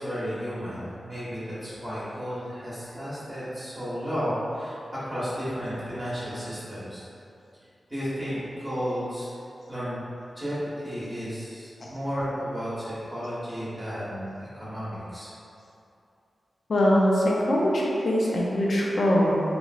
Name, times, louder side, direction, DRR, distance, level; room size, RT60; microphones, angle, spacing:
voice 1, 0.0-7.0 7.9-9.3 9.7-10.0 10.4-15.3, equal, 10° right, -12 dB, 0.9 m, -33 dB
voice 2, 16.7-19.4, equal, 60° left, -3 dB, 0.4 m, -22 dB
3.0 x 2.5 x 2.4 m, 2.6 s
wide cardioid pair, 135°, 0 cm